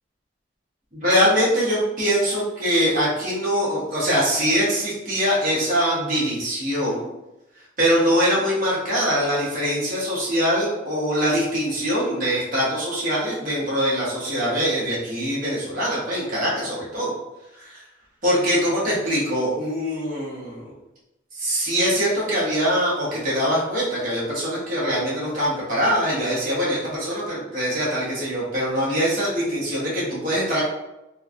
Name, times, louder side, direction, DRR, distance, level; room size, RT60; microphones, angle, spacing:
voice 1, 0.9-7.1 7.8-17.1 17.5-17.8 18.2-20.7 21.4-30.6, equal, 45° right, -7 dB, 1.1 m, -23 dB
3.2 x 2.2 x 2.5 m, 0.96 s
head